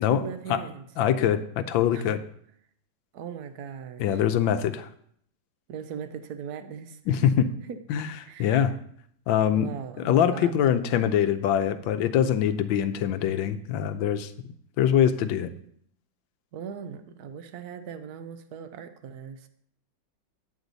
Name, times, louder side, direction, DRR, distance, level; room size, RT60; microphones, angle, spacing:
voice 1, 0.0-0.8 1.9-2.2 3.1-4.2 5.7-7.3 7.7-7.8 8.2-8.7 9.5-10.7 16.5-19.5, right 7 dB, 60° right, 10 dB, 1.1 m, -39 dB
voice 2, 1.0-2.2 4.0-4.9 7.1-7.5 7.9-8.1 8.4-8.8 9.3-9.7 10.0-14.3 14.8-15.5, left 9 dB, 80° left, 11 dB, 1.4 m, -23 dB
9.6 x 8.0 x 4.0 m, 0.67 s
omnidirectional pair, 2.1 m